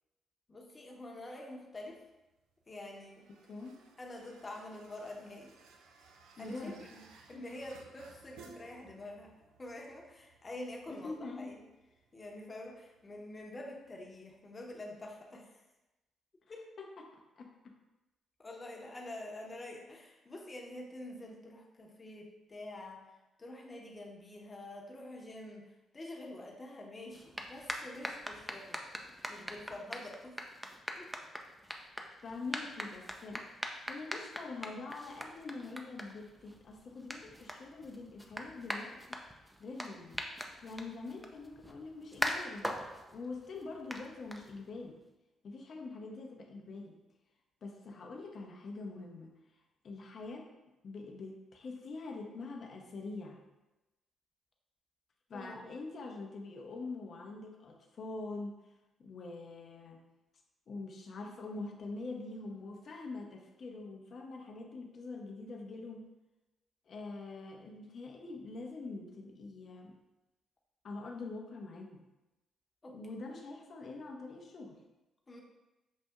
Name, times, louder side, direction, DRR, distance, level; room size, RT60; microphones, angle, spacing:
voice 1, 0.5-2.0 2.7-3.2 4.0-5.6 6.4-9.3 9.6-11.6 12.1-15.6 16.5-16.7 18.4-28.8 29.3-30.4 31.0-31.2 55.3-55.7 72.8-73.0 73.2-73.3 75.3-75.4, left 1 dB, 35° left, -1 dB, 0.9 m, -47 dB
sound 1, 1.8-15.1, right 4 dB, 75° right, 0.4 m, -61 dB
voice 2, 6.4-6.8 7.3-7.4 10.9-11.6 16.8-17.7 32.2-33.5 33.9-39.2 39.6-40.2 40.6-42.7 43.1-45.0 45.4-46.9 47.6-49.3 49.8-50.5 50.8-53.4 55.3-58.6 59.0-60.0 60.7-66.1 66.9-70.0 70.8-72.0 72.9-74.8, left 3 dB, 55° left, 2 dB, 0.7 m, -44 dB
sound 2, 27.1-44.9, equal, 5° right, 0.5 m, -43 dB
6.3 x 2.6 x 2.3 m, 1.0 s
hypercardioid pair, 45°, 0 cm